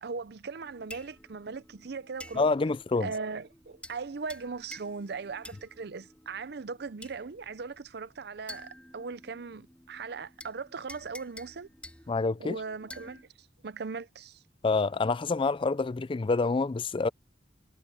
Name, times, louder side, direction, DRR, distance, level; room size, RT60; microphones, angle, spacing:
voice 1, 0.0-2.5 3.0-11.7 12.4-14.4, right 4 dB, 65° right, 0.6 m, -39 dB
sound 1, 0.6-13.2, left 1 dB, 5° left, 3.4 m, -51 dB
voice 2, 2.3-3.1 12.1-12.6 14.6-17.1, left 3 dB, 30° left, 0.4 m, -27 dB
head